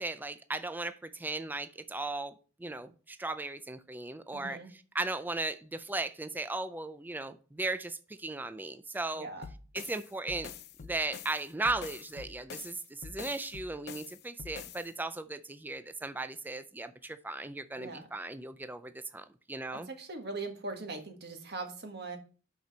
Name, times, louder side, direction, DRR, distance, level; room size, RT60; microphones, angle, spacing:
voice 1, 0.0-2.3 2.6-4.6 4.9-9.3 9.7-10.5 10.8-19.9, right 2 dB, 10° right, 0.4 m, -37 dB
voice 2, 4.3-4.7 9.1-9.5 17.8-18.1 19.7-22.2, right 3 dB, 60° right, 1.7 m, -40 dB
sound 1, 9.4-14.9, left 6 dB, 55° left, 0.5 m, -46 dB
5.9 x 5.6 x 5.5 m
head